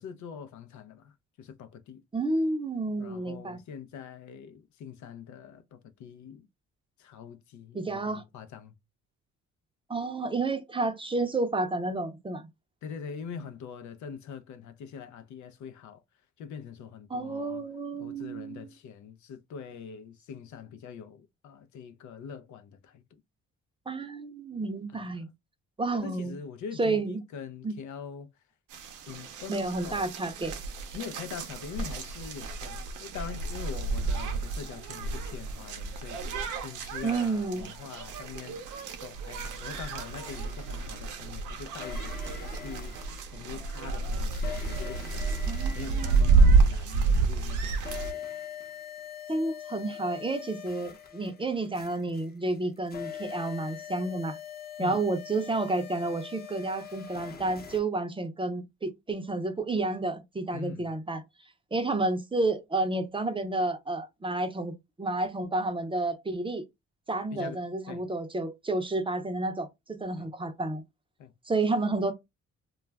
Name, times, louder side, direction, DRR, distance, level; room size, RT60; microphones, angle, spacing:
voice 1, 0.0-2.0 3.0-6.5 7.0-8.7 12.8-16.0 16.4-17.6 18.0-23.0 24.9-25.2 25.9-28.3 29.1-30.0 30.9-36.2 36.6-38.6 39.0-42.2 42.5-43.0 43.3-45.3 45.7-48.3 54.8-55.0 60.5-60.9 67.3-68.0 70.2-70.3 71.2-71.3, left 7 dB, 70° left, 0.5 m, -43 dB
voice 2, 2.1-3.6 7.7-8.2 9.9-12.5 17.1-18.7 23.9-25.3 25.8-26.4 26.8-27.2 27.6-27.7 29.5-30.5 37.0-37.7 45.5-46.6 49.3-54.4 54.8-61.2 61.7-66.6 67.1-70.8 71.5-72.1, right 2 dB, 15° right, 0.6 m, -30 dB
sound 1, 28.7-48.1, right 4 dB, 85° right, 0.6 m, -29 dB
sound 2, 40.3-41.2 41.7-47.2 47.4-57.8, left 8 dB, 30° left, 0.7 m, -43 dB
2.3 x 2.1 x 3.3 m
cardioid pair, 90°, 30 cm